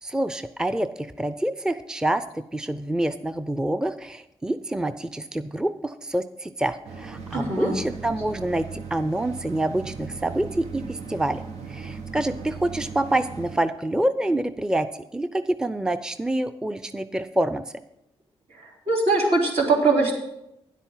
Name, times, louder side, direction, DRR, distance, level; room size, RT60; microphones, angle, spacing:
voice 1, 0.0-11.4 11.7-14.9 15.1-17.6, right 1 dB, 5° right, 12 dB, 0.5 m, -27 dB
sound 1, 6.8-13.6, right 5 dB, 90° right, 1.2 m, -38 dB
voice 2, 7.3-7.7 18.9-20.2, right 3 dB, 70° right, -2 dB, 3.4 m, -21 dB
10.0 x 8.2 x 5.6 m, 0.84 s
cardioid pair, 65°, 11 cm